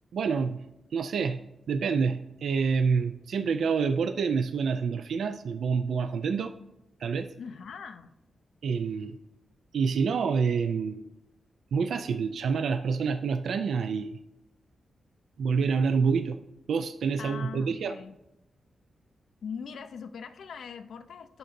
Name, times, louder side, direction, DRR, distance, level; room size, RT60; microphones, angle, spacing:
voice 1, 0.1-0.6 0.9-1.4 1.7-6.5 7.0-7.3 8.6-9.2 9.7-11.0 11.7-14.2 15.4-16.4 16.7-18.0, right 5 dB, 75° right, 9 dB, 0.3 m, -27 dB
voice 2, 7.4-8.1 17.2-18.2 19.4-21.4, left 6 dB, 75° left, 9 dB, 0.4 m, -41 dB
11.0 x 3.8 x 2.6 m, 0.91 s
wide cardioid pair, 150°, 0 cm